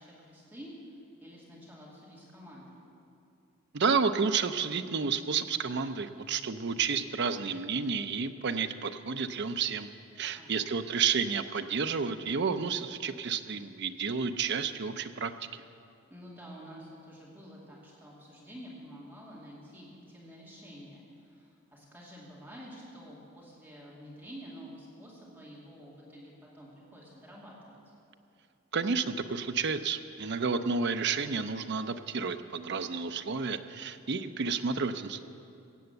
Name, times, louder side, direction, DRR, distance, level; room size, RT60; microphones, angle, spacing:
voice 1, 0.0-2.8 10.3-10.7 16.1-27.8, equal, 10° right, -6 dB, 2.5 m, -49 dB
voice 2, 3.7-9.9 10.2-15.6 28.7-35.2, right 5 dB, 55° right, 9 dB, 0.6 m, -31 dB
16.5 x 8.0 x 7.9 m, 2.5 s
head